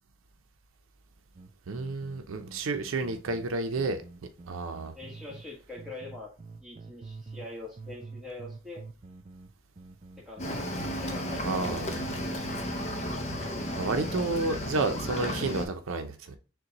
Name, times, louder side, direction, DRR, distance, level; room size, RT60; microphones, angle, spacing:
sound 1, 1.3-5.5 5.8-7.5 7.8-13.5 13.8-14.2, right 3 dB, 30° right, 0.3 m, -47 dB
voice 1, 1.7-4.0 4.5-4.9 11.4-11.9 13.8-16.4, right 3 dB, 90° right, 0.5 m, -31 dB
voice 2, 4.9-6.3 6.6-8.8 10.2-12.3, left 2 dB, 5° right, 1.3 m, -44 dB
Cricket / Waves surf, 10.4-15.7, equal, 35° left, 0.5 m, -33 dB
6.4 x 2.2 x 2.8 m
head